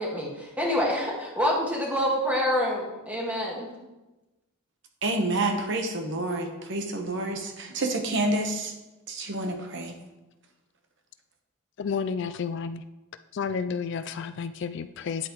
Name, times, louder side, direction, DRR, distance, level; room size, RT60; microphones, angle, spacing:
voice 1, 0.0-3.7, equal, 5° right, -3 dB, 1.7 m, -27 dB
voice 2, 5.0-8.7 9.1-10.0, right 2 dB, 55° right, 4 dB, 1.0 m, -28 dB
voice 3, 11.8-12.8 13.3-15.3, left 6 dB, 55° left, 11 dB, 0.3 m, -31 dB
9.6 x 8.4 x 3.0 m, 1.0 s
head